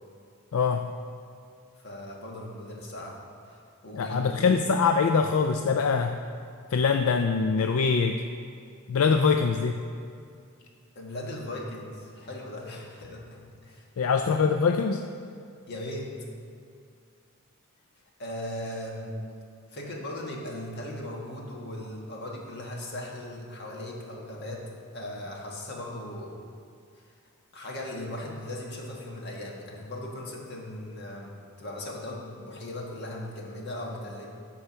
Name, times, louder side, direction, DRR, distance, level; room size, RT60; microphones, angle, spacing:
voice 1, 0.5-0.9 3.9-6.2 6.7-8.2 8.9-9.8 14.0-15.1, left 5 dB, 70° left, 6 dB, 0.4 m, -23 dB
voice 2, 1.8-3.2 3.5-4.4 10.9-13.9 15.7-16.1 18.2-19.1 19.7-26.4 26.9-27.1 27.5-34.3, left 1 dB, 50° left, -1 dB, 1.5 m, -38 dB
13.0 x 4.6 x 5.6 m, 2.3 s
head